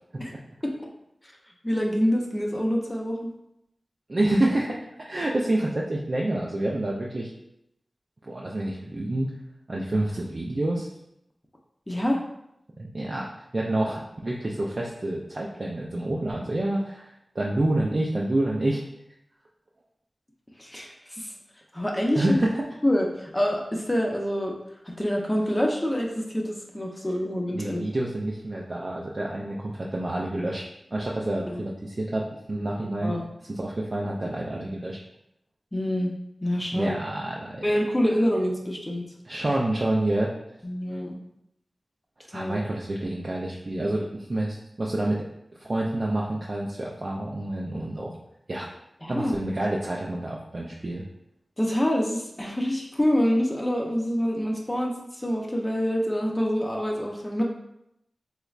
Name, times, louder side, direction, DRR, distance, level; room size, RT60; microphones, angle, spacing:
voice 1, 1.6-3.3 11.9-12.2 20.6-21.3 21.7-22.3 22.8-24.5 24.8-27.8 31.5-31.6 33.0-33.3 35.7-36.1 36.4-36.9 37.6-39.1 40.6-41.2 42.3-42.6 49.0-49.4 51.6-57.4, equal, 20° left, 0 dB, 0.6 m, -26 dB
voice 2, 4.1-7.3 8.2-9.3 9.7-10.9 12.9-18.8 22.1-22.6 27.5-30.6 30.9-33.1 33.5-35.0 36.7-37.6 39.3-40.3 42.3-45.3 45.6-48.2 48.5-48.7 49.1-51.0, right 1 dB, 55° right, -3 dB, 0.4 m, -28 dB
3.2 x 3.1 x 2.4 m, 0.81 s
cardioid pair, 40°, 0 cm